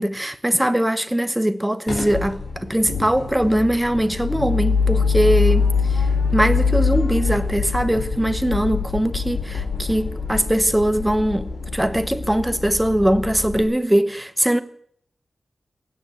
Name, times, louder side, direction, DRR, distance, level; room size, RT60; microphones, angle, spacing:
voice 1, 0.0-6.1 6.3-14.6, right 1 dB, 5° right, 0.9 m, -21 dB
sound 1, 1.9-13.6, left 5 dB, 90° left, 4.6 m, -24 dB
16.0 x 10.0 x 8.2 m
wide cardioid pair, 145°, 0 cm